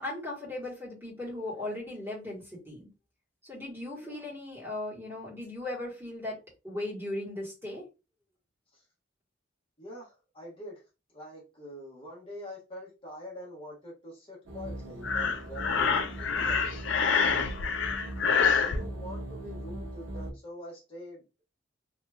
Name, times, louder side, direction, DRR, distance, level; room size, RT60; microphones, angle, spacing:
voice 1, 0.0-2.8 3.5-6.4 6.6-7.8, left 1 dB, 10° right, 1.5 m, -37 dB
voice 2, 9.8-10.8 11.1-17.6 18.4-21.2, equal, 30° left, 1.1 m, -45 dB
sound 1, 14.5-20.3, right 1 dB, 90° right, 0.9 m, -40 dB
Breathing, 15.0-18.8, left 6 dB, 80° left, 0.5 m, -26 dB
3.2 x 2.8 x 2.3 m
head